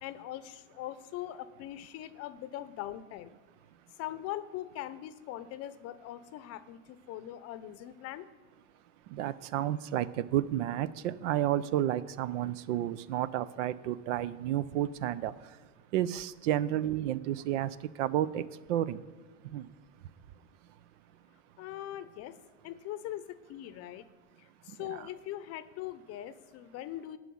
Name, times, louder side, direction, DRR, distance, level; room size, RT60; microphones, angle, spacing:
voice 1, 0.0-3.3 4.0-8.3 21.6-22.4 22.6-24.1 24.4-27.2, left 13 dB, 40° left, 14 dB, 0.6 m, -41 dB
voice 2, 9.1-15.3 15.9-19.0 19.5-19.7, right 12 dB, 75° right, 17 dB, 0.6 m, -31 dB
9.1 x 6.3 x 8.6 m, 1.3 s
supercardioid pair, 130°, 36 cm